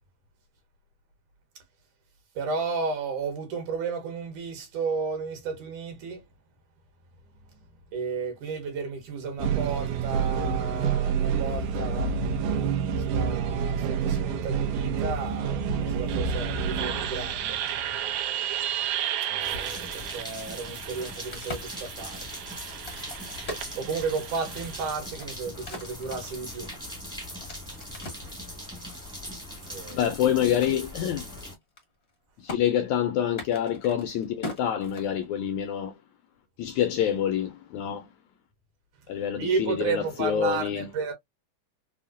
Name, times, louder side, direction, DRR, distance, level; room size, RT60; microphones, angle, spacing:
voice 1, 2.4-6.2 7.9-12.1 13.0-18.2 19.3-22.3 23.8-26.7 27.6-28.5 29.6-30.1 39.4-41.1, right 4 dB, 75° right, 2.7 m, -33 dB
sound 1, 9.4-24.9, right 7 dB, 90° right, 2.3 m, -29 dB
sound 2, 19.4-31.5, left 1 dB, 5° right, 0.5 m, -40 dB
Crack, 20.9-24.5 25.0-28.3 28.9-30.2 30.6-30.7 31.0-31.3 31.6-32.1 32.5-32.6 33.2-35.5, left 2 dB, 65° left, 0.6 m, -41 dB
voice 2, 29.9-31.3 32.4-36.0 36.6-38.1 39.1-40.9, left 9 dB, 80° left, 1.6 m, -27 dB
5.5 x 2.1 x 2.4 m
omnidirectional pair, 3.7 m